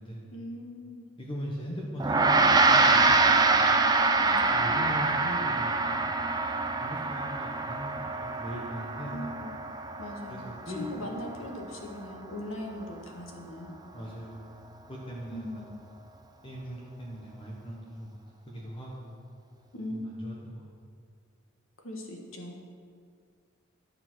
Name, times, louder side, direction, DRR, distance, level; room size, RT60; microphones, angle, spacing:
voice 1, 0.3-1.0 4.2-4.8 9.0-9.6 10.0-13.8 15.3-15.7 19.7-20.5 21.8-22.6, left 1 dB, 85° left, 1 dB, 1.6 m, -40 dB
voice 2, 1.2-3.6 4.5-6.1 6.8-9.1 10.3-10.9 13.9-14.5 14.9-15.7 16.4-18.1 18.5-19.2 19.9-20.7, equal, 25° left, -4 dB, 1.3 m, -40 dB
Gong, 2.0-11.6, right 3 dB, 20° right, 0.6 m, -25 dB
10.5 x 6.8 x 6.3 m, 2.1 s
head